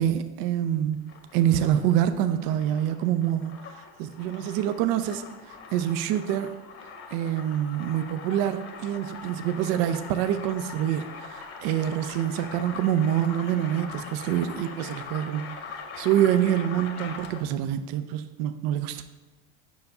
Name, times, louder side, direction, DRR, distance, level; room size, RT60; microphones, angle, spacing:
voice 1, 0.0-6.5 7.1-19.1, right 10 dB, 60° right, 10 dB, 0.5 m, -26 dB
sound 1, 0.9-17.6, left 5 dB, 40° left, 1.1 m, -42 dB
5.2 x 4.8 x 5.4 m, 1.2 s
supercardioid pair, 105°, 39 cm